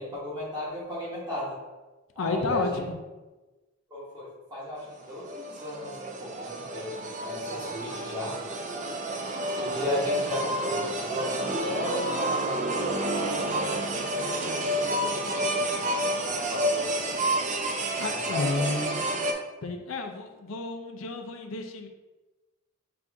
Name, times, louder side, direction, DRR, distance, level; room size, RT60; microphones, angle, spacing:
voice 1, 0.0-1.6 2.1-2.8 3.9-8.3 9.5-14.0 14.7-17.3 18.1-18.7, left 1 dB, 20° right, -7 dB, 1.2 m, -35 dB
voice 2, 2.2-3.0 18.0-19.1 19.6-21.9, left 3 dB, 70° left, 5 dB, 0.5 m, -31 dB
sound 1, 4.9-19.3, right 1 dB, 35° right, 0.5 m, -30 dB
5.8 x 2.6 x 3.5 m, 1.2 s
head